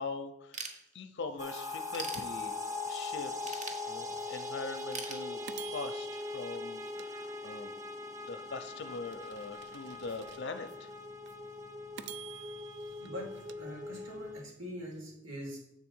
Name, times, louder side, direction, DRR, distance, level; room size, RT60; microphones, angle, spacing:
voice 1, 0.0-7.7 8.2-10.9, left 4 dB, 60° left, 9 dB, 0.6 m, -42 dB
Ratchet pawl / Tools, 0.5-1.3 1.7-2.8 3.4-4.4 4.9-5.9, right 3 dB, 40° right, 1.0 m, -42 dB
sound 1, 1.4-14.4, left 3 dB, 15° right, 0.6 m, -41 dB
sound 2, 4.2-4.3 4.7-4.8 5.5-7.8 8.3-10.8 11.3-11.4 12.0-14.3, right 11 dB, 60° right, 0.4 m, -51 dB
voice 2, 13.5-15.6, equal, 85° right, -2 dB, 2.8 m, -43 dB
7.4 x 3.7 x 6.1 m, 0.81 s
head